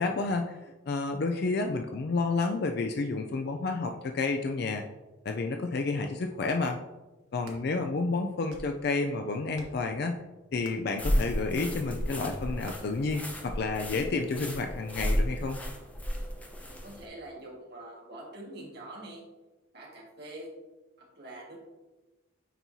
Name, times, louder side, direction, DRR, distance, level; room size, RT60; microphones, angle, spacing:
voice 1, 0.0-4.8 5.2-6.8 7.3-10.2 10.5-15.6, left 3 dB, 55° left, 4 dB, 0.4 m, -30 dB
sound 1, 7.2-7.6 8.3-8.8 9.5-9.9 10.6-10.9 11.6-11.8 12.7-12.8, right 1 dB, 80° right, 1.2 m, -49 dB
sound 2, 11.0-17.1, equal, 5° left, 0.7 m, -33 dB
voice 2, 16.8-19.2 19.7-20.5 21.2-21.6, right 1 dB, 55° right, -2 dB, 1.6 m, -44 dB
9.1 x 4.5 x 2.7 m, 1.1 s
head